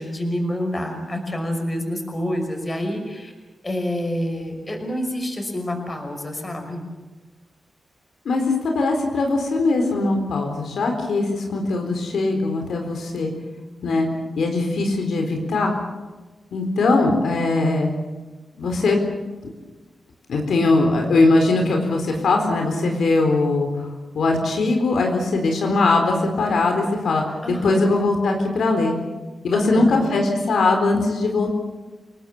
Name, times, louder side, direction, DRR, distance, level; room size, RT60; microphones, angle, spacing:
voice 1, 0.0-3.3 3.6-6.8 27.4-27.9 29.5-30.1, equal, 25° left, 4 dB, 5.7 m, -27 dB
voice 2, 8.2-13.3 13.8-14.1 14.4-15.8 16.5-17.9 18.5-19.0 20.3-23.7 24.1-27.4 27.6-29.0 29.4-31.5, left 3 dB, 85° left, 3 dB, 4.1 m, -20 dB
28.5 x 18.5 x 7.2 m, 1.2 s
wide cardioid pair, 90°, 0 cm